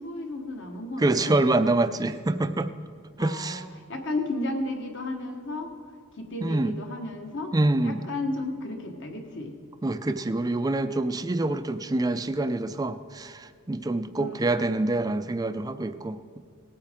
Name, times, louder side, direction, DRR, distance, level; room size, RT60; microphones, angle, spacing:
voice 1, 0.0-1.3 3.2-5.7 6.2-7.5 7.8-9.5 14.1-14.6, left 2 dB, 60° left, 3 dB, 1.4 m, -33 dB
voice 2, 1.0-2.7 3.2-3.6 6.4-6.8 7.5-8.0 9.8-16.4, right 2 dB, 15° right, 11 dB, 0.4 m, -26 dB
18.0 x 9.0 x 3.7 m, 2.2 s
head